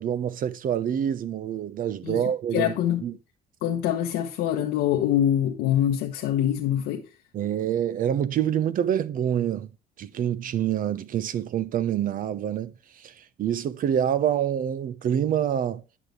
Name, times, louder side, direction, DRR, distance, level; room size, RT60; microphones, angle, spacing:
voice 1, 0.0-2.7 3.0-3.1 7.3-9.7 10.0-15.8, right 9 dB, 55° right, 0.9 m, -26 dB
voice 2, 2.5-3.1 3.6-7.1, left 11 dB, 90° left, 1.1 m, -24 dB
9.8 x 6.6 x 3.3 m
cardioid pair, 110°, 17 cm